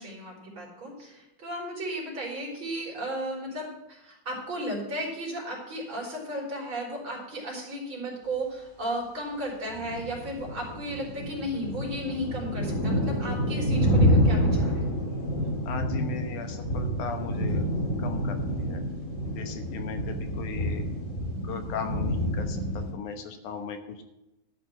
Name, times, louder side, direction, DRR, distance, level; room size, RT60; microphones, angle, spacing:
voice 1, 0.0-14.8, right 1 dB, 40° right, -3 dB, 4.3 m, -34 dB
sound 1, 9.7-22.9, equal, 30° left, 1.9 m, -28 dB
voice 2, 15.7-17.7 18.0-18.8 19.2-20.9 21.4-24.0, left 5 dB, 75° left, 6 dB, 2.5 m, -37 dB
12.5 x 5.2 x 8.9 m, 0.92 s
omnidirectional pair, 3.6 m